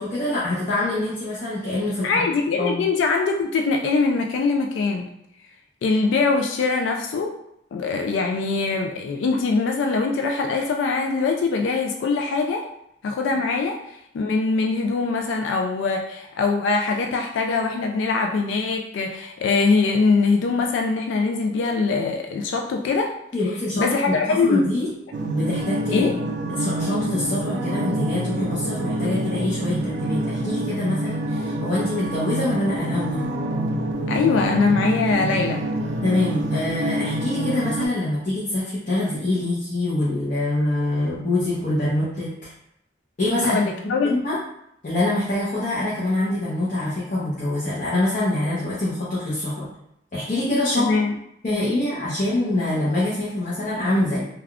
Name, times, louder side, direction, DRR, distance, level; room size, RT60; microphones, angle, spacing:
voice 1, 0.0-2.2 2.6-2.8 23.3-24.9 25.2-26.2 26.5-33.3 36.0-42.5 43.2-43.7 44.0-44.4 44.8-49.7 50.1-50.9 51.4-54.2, left 1 dB, 45° left, -9 dB, 0.7 m, -25 dB
voice 2, 2.0-5.1 5.8-7.3 7.7-12.6 13.0-23.1 23.8-24.7 25.9-26.1 34.1-35.7 43.4-44.2 50.8-51.2, left 4 dB, 85° left, 2 dB, 0.3 m, -22 dB
sound 1, 25.1-37.9, right 1 dB, 75° right, 0.4 m, -27 dB
3.4 x 2.3 x 2.3 m, 0.76 s
head